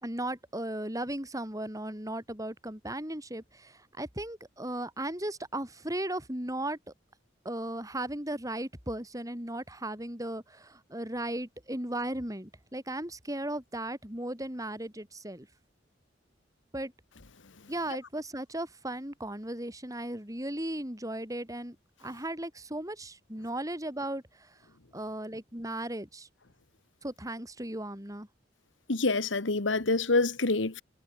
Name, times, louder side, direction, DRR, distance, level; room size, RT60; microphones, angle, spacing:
voice 1, 0.0-6.8 7.4-15.5 16.7-16.9 17.7-21.8 22.0-24.5 24.9-26.3 27.0-28.3, right 1 dB, 20° right, 6.3 m, -36 dB
voice 2, 28.9-30.8, left 3 dB, 90° left, 1.5 m, -26 dB
head